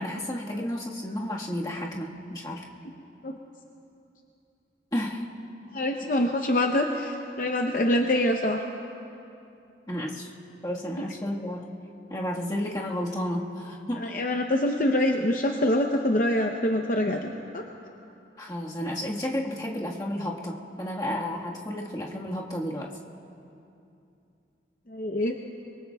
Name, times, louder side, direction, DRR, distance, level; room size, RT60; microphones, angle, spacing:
voice 1, 0.0-2.6 4.9-5.3 9.9-10.3 10.6-11.7 12.1-14.2 18.4-22.9, left 1 dB, 20° left, -3 dB, 1.5 m, -32 dB
voice 2, 5.7-8.6 14.0-17.6 24.9-25.4, left 1 dB, 45° left, 3 dB, 0.7 m, -25 dB
26.0 x 23.0 x 2.3 m, 2.7 s
head